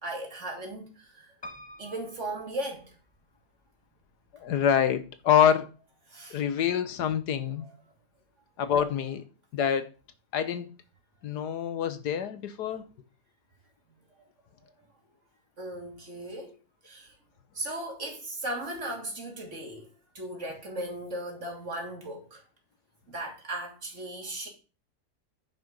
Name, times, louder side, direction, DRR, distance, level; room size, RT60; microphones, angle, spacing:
voice 1, 0.0-1.3 1.8-2.9 6.1-6.4 7.6-7.7 15.6-16.5 16.8-17.1 17.5-19.9 20.1-22.4 23.1-24.5, right 1 dB, 45° right, 3.0 m, -37 dB
Piano, 1.4-3.4 4.0-4.7 5.1-5.2 5.4-5.5, left 1 dB, 20° left, 0.7 m, -48 dB
voice 2, 4.3-5.7 6.3-7.7 8.6-9.2 9.5-9.9 10.3-10.7 11.2-12.9, left 8 dB, 75° left, 1.5 m, -26 dB
10.0 x 6.1 x 5.3 m
omnidirectional pair, 1.8 m